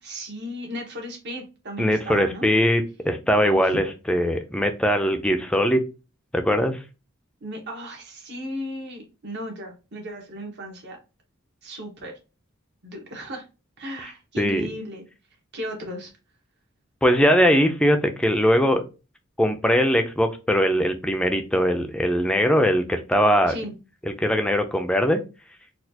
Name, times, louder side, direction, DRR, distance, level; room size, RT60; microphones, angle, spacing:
voice 1, 0.0-2.5 3.4-3.8 7.4-11.0 11.6-12.1 12.8-13.4 13.8-15.0 15.5-16.1 23.5-23.8, equal, 55° right, 1 dB, 1.1 m, -35 dB
voice 2, 1.8-5.8 6.3-6.8 14.4-14.7 17.0-18.8 19.4-23.5 24.2-25.2, equal, 5° left, 6 dB, 0.4 m, -21 dB
4.1 x 2.4 x 2.7 m, 0.30 s
head